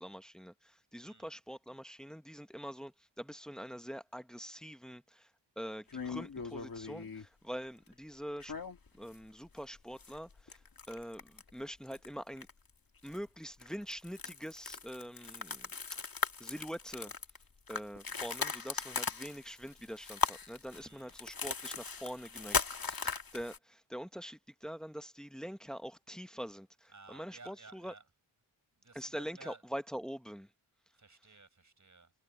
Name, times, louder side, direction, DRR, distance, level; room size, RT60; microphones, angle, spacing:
voice 1, 0.0-5.3 5.6-8.5 8.9-10.6 10.9-12.5 13.0-15.7 16.4-17.1 17.7-27.9 28.9-30.5, equal, ahead, 0.9 m, -44 dB
voice 2, 1.0-1.3 18.0-18.4 20.7-21.2 26.9-28.0 28.8-29.6 30.9-32.1, right 3 dB, 40° right, 6.7 m, -56 dB
sound 1, 5.9-7.3 8.4-9.1 9.4-9.6 10.0-11.5 11.8-12.1 12.4-12.7 13.1-13.2 13.6-23.6, left 5 dB, 50° left, 2.0 m, -38 dB
wide cardioid pair, 120°, 44 cm